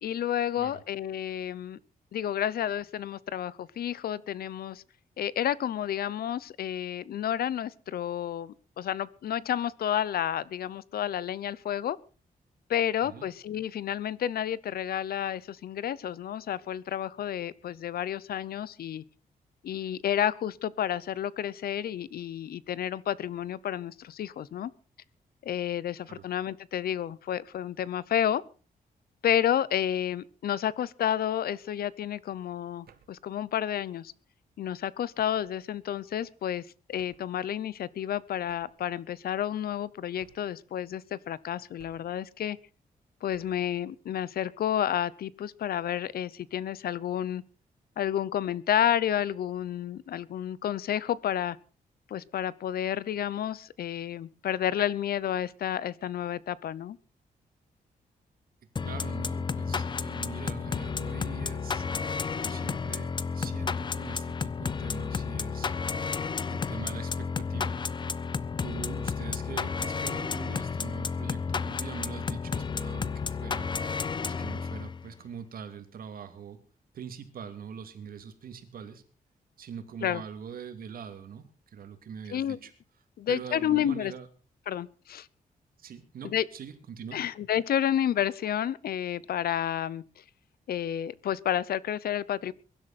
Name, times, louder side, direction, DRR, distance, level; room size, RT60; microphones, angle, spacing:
voice 1, 0.0-1.8 2.1-4.8 5.2-12.0 12.7-19.0 19.6-24.7 25.4-28.4 29.2-34.1 34.6-42.6 43.2-47.4 48.0-51.6 52.1-57.0 80.0-80.2 82.3-82.6 83.2-84.1 84.7-85.3 86.2-86.5 87.1-90.0 90.7-92.5, left 10 dB, 85° left, 0.8 m, -30 dB
sound 1, 32.9-33.3 35.2-35.6 37.0-37.4 38.5-38.9 40.2-40.6 41.8-42.3 43.3-43.7, right 8 dB, 90° right, 2.0 m, -59 dB
sound 2, 58.8-75.1, left 5 dB, 30° left, 0.6 m, -32 dB
voice 2, 58.8-61.9 62.3-65.7 66.5-67.7 68.6-76.6 76.9-79.0 79.6-82.7 83.3-84.3 85.8-87.2, right 7 dB, 70° right, 2.7 m, -43 dB
22.5 x 12.0 x 4.3 m
wide cardioid pair, 175°, 16 cm